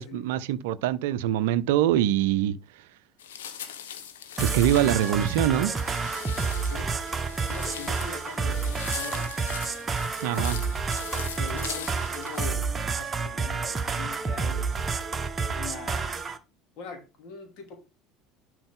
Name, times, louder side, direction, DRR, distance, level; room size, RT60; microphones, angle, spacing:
voice 1, 0.0-2.6 4.4-5.7 10.2-10.6, right 12 dB, 65° right, 0.6 m, -24 dB
sound 1, 3.2-12.5, left 9 dB, 70° left, 1.2 m, -40 dB
sound 2, 4.4-16.4, right 4 dB, 25° right, 1.1 m, -29 dB
voice 2, 6.6-7.0 7.5-9.3 10.4-10.7 11.4-12.7 13.0-14.9 15.5-16.3 16.8-17.8, left 5 dB, 50° left, 3.0 m, -42 dB
11.5 x 4.9 x 3.7 m
figure-of-eight pair, 70°, 0 cm